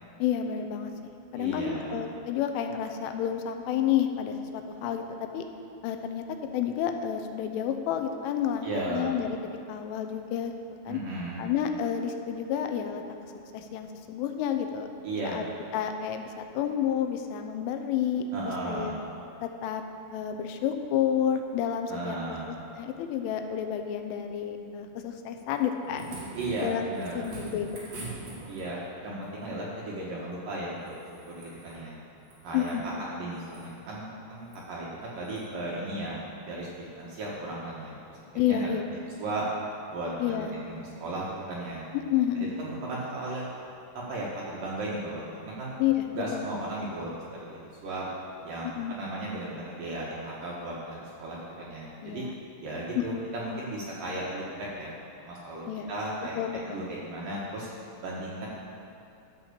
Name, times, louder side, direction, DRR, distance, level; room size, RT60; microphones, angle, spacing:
voice 1, 0.2-0.9 1.3-5.4 5.8-6.2 6.5-9.4 9.7-10.5 10.9-11.0 11.4-13.0 13.5-14.9 15.3-15.4 15.7-16.3 16.5-18.9 19.4-19.8 20.1-26.2 26.6-26.9 27.1-28.4 32.5-32.8 38.4-38.9 40.2-40.5 41.9-42.5 45.8-46.4 48.6-49.0 52.0-52.4 53.0-53.2 55.7-55.9 56.4-56.8, left 9 dB, 85° left, 6 dB, 3.2 m, -30 dB
voice 2, 1.4-2.0 8.6-9.1 10.9-11.4 15.0-15.4 18.3-19.0 21.9-22.5 26.3-27.1 28.5-30.9 31.3-31.9 32.4-38.7 39.2-39.5 39.9-41.8 42.4-43.5 43.9-45.7 46.1-48.1 48.4-52.3 52.6-57.7 58.0-58.5, right 1 dB, 65° right, -5 dB, 2.2 m, -36 dB
sound 1, 25.6-28.9 30.8-31.8 32.2-32.8 33.3-33.8 34.4-34.6 35.2-35.5 36.8-36.9, right 2 dB, 45° right, 2.3 m, -44 dB
13.5 x 5.7 x 6.8 m, 2.6 s
omnidirectional pair, 5.7 m